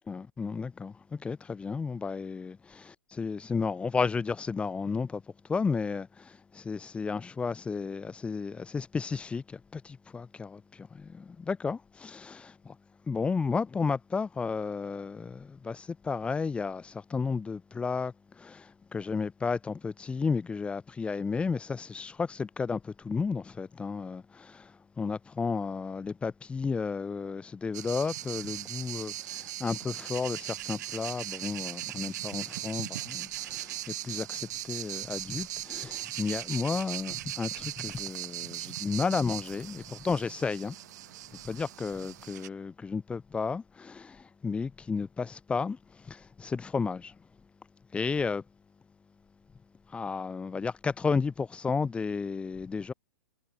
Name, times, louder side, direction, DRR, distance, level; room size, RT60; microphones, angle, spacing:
voice 1, 0.1-5.2 5.5-12.8 13.1-40.8 41.4-47.2 47.9-48.4 49.9-52.9, left 5 dB, 10° left, 0.5 m, -33 dB
sound 1, 27.7-42.5, right 14 dB, 60° right, 2.7 m, -39 dB
hypercardioid pair, 115°, 11 cm